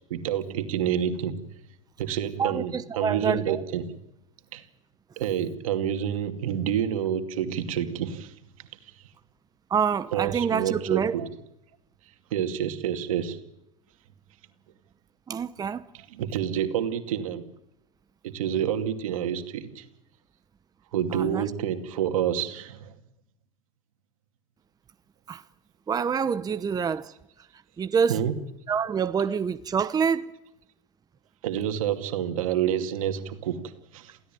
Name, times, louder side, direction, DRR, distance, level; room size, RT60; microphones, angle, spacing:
voice 1, 0.1-1.4 2.0-3.9 4.5-4.6 5.2-8.3 8.6-8.7 10.1-11.3 12.3-13.4 16.1-17.4 18.2-19.8 20.9-22.9 28.1-28.4 31.4-33.6 33.9-34.2, right 9 dB, 80° right, 2.5 m, -28 dB
voice 2, 2.4-3.6 9.7-11.2 15.3-15.8 21.1-21.5 25.3-25.4 25.9-27.1 27.8-28.2 28.7-30.3, right 6 dB, 20° right, 0.9 m, -26 dB
28.0 x 16.5 x 9.1 m
hypercardioid pair, 100°, 17 cm